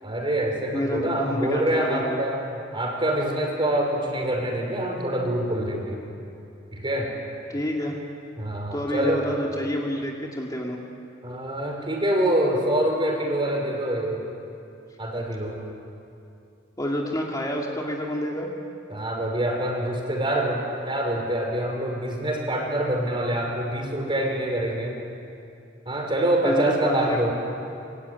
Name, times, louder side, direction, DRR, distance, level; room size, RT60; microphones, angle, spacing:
voice 1, 0.0-6.0 6.7-7.1 8.4-9.2 11.2-14.2 15.0-15.5 18.9-25.0 25.9-27.3, right 1 dB, 25° right, 1 dB, 5.5 m, -25 dB
voice 2, 0.7-2.2 7.5-8.0 8.7-10.8 16.8-18.5 26.4-27.2, equal, 20° left, -1 dB, 2.4 m, -28 dB
25.5 x 23.0 x 9.8 m, 2.6 s
head